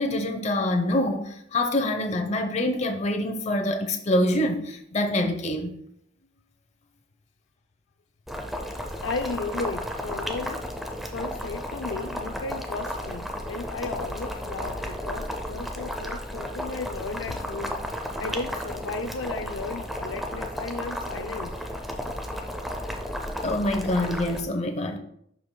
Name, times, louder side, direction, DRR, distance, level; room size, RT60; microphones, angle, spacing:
voice 1, 0.0-5.8 23.4-25.0, left 1 dB, 35° left, 0.8 m, -25 dB
Boiling, 8.3-24.4, equal, ahead, 0.6 m, -33 dB
voice 2, 9.0-10.6 11.1-17.8 18.2-21.6, left 3 dB, 80° left, 0.4 m, -34 dB
11.0 x 4.8 x 2.2 m
head